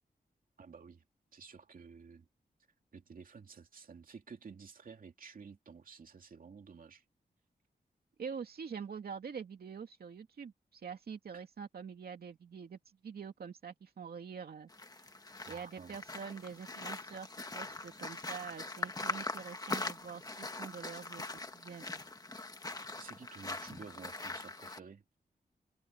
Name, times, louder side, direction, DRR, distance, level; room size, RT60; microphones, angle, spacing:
voice 1, 0.6-1.0 1.3-2.2 2.9-7.0 11.3-11.4 15.4-15.9 23.0-25.0, right 5 dB, 60° right, 2.6 m, -52 dB
voice 2, 8.2-14.7 15.0-15.1 15.5-17.3 17.5-22.0, right 6 dB, 80° right, 2.4 m, -45 dB
sound 1, 14.7-24.8, left 2 dB, 25° left, 1.6 m, -42 dB
wide cardioid pair, 125°, 16 cm